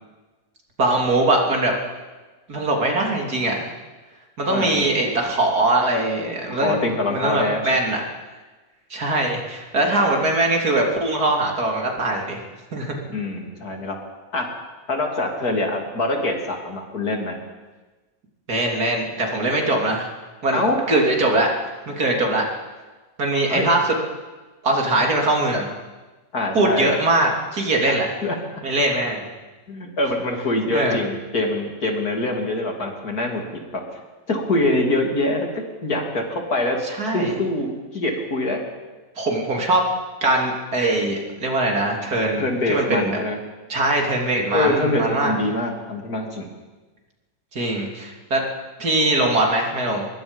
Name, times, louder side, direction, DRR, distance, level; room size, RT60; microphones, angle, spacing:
voice 1, 0.8-1.7 2.5-3.7 4.4-6.8 7.1-8.0 8.9-12.4 12.7-13.0 18.5-20.1 20.4-20.6 20.9-21.5 21.9-22.4 23.2-23.9 24.6-25.7 26.5-28.1 28.6-29.3 30.7-31.0 36.8-37.3 39.2-39.8 40.2-43.2 43.7-45.3 47.5-48.4 48.8-50.1, right 2 dB, 80° right, 0 dB, 3.8 m, -21 dB
voice 2, 4.5-4.8 6.5-7.6 13.1-14.0 14.3-14.5 14.9-17.4 20.5-20.8 23.5-23.7 26.3-26.9 27.9-28.3 29.7-33.8 34.3-35.5 35.8-36.8 37.1-38.6 42.4-43.4 44.5-46.5, left 2 dB, 75° left, 2 dB, 3.5 m, -24 dB
25.0 x 21.5 x 5.4 m, 1.2 s
omnidirectional pair, 1.6 m